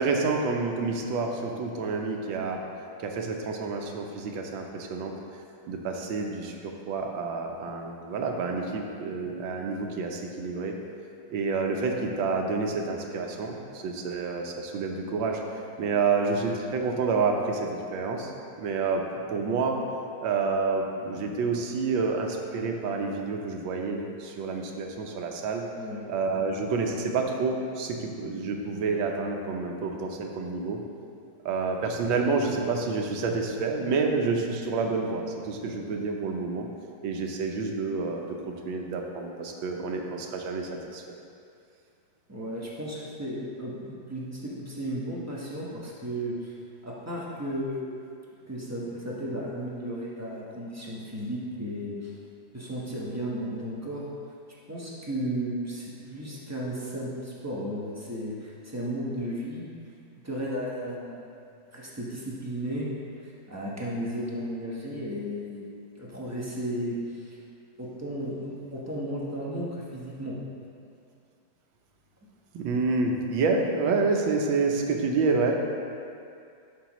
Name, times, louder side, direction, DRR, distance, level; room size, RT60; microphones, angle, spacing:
voice 1, 0.0-2.6 3.0-5.1 5.7-10.7 11.3-15.4 15.8-18.3 18.6-19.0 19.3-19.8 20.2-25.6 26.1-30.8 31.4-36.7 37.0-41.0 72.5-75.6, right 4 dB, 70° right, 2 dB, 1.5 m, -28 dB
voice 2, 25.7-26.1 42.3-46.5 46.8-47.9 48.5-52.1 52.5-54.1 54.7-59.7 60.2-61.3 61.7-62.9 63.2-65.6 66.0-67.4 67.8-70.4, equal, 15° right, -6 dB, 0.5 m, -34 dB
11.5 x 6.0 x 3.0 m, 2.4 s
omnidirectional pair, 2.3 m